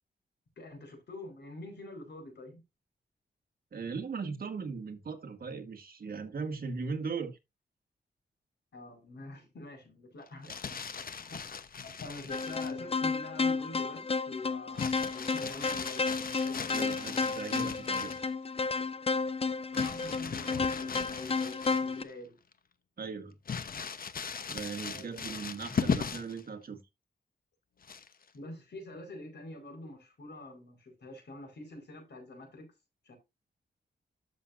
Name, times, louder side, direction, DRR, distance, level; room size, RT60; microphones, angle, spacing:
voice 1, 0.6-2.6 8.7-10.9 11.3-11.4 11.8-17.0 19.7-22.4 24.8-25.3 28.3-32.7 33.0-33.2, left 2 dB, 70° left, 4.7 m, -46 dB
voice 2, 3.7-7.4 10.4-10.5 16.7-18.2 23.0-23.4 24.4-26.8, right 5 dB, 55° right, 1.8 m, -38 dB
Crumpling crinkling, 10.3-12.8 14.7-18.3 19.7-22.1 22.5-22.6 23.5-26.4 27.8-28.3, left 6 dB, 55° left, 1.0 m, -38 dB
sound 1, 12.3-22.0, left 4 dB, 30° left, 0.6 m, -32 dB
13.0 x 6.4 x 2.6 m
wide cardioid pair, 120°, 18 cm